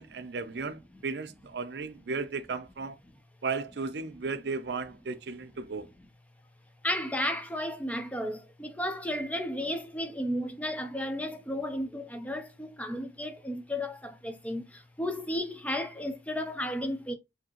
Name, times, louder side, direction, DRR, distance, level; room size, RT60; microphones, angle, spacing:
voice 1, 0.0-3.0 3.4-5.9, right 4 dB, 70° right, 0.5 m, -35 dB
voice 2, 6.8-14.6 15.0-17.1, left 1 dB, 10° left, 0.5 m, -33 dB
4.8 x 2.8 x 2.9 m
head